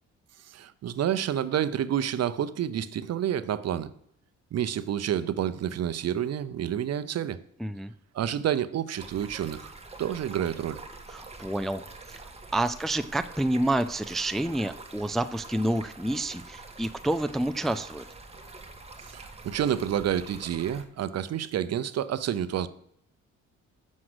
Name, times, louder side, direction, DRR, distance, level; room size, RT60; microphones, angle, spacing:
voice 1, 0.5-3.9 4.5-7.4 8.1-9.7 10.0-10.8 19.0-22.7, right 10 dB, 55° right, 14 dB, 0.7 m, -29 dB
voice 2, 7.6-7.9 11.1-11.8 12.1-12.2 12.5-18.0, right 1 dB, ahead, 11 dB, 0.4 m, -28 dB
Stream, 9.0-20.8, right 3 dB, 20° right, 1.6 m, -46 dB
7.3 x 6.4 x 7.9 m, 0.70 s
cardioid pair, 90°, 30 cm